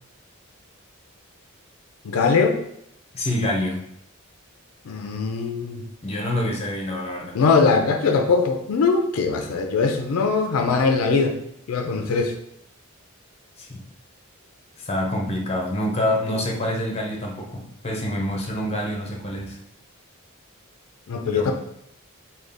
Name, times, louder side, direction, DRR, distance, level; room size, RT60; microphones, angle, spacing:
voice 1, 2.0-2.6 4.9-5.8 7.3-11.4 11.7-12.3 21.1-21.5, left 4 dB, 90° left, 5 dB, 0.4 m, -21 dB
voice 2, 3.1-3.9 6.0-7.4 13.6-13.8 14.8-19.6 21.3-21.5, left 1 dB, 30° left, 0 dB, 0.6 m, -26 dB
3.7 x 2.3 x 3.4 m, 0.75 s
head